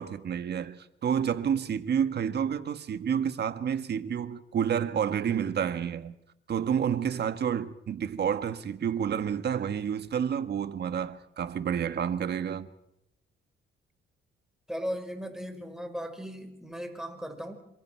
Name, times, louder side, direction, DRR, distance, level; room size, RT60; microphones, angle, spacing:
voice 1, 0.0-6.2 6.5-12.7, right 8 dB, 55° right, 1.6 m, -29 dB
voice 2, 14.7-17.6, equal, 5° right, 5.1 m, -37 dB
28.0 x 27.0 x 4.6 m
cardioid pair, 90°, 20 cm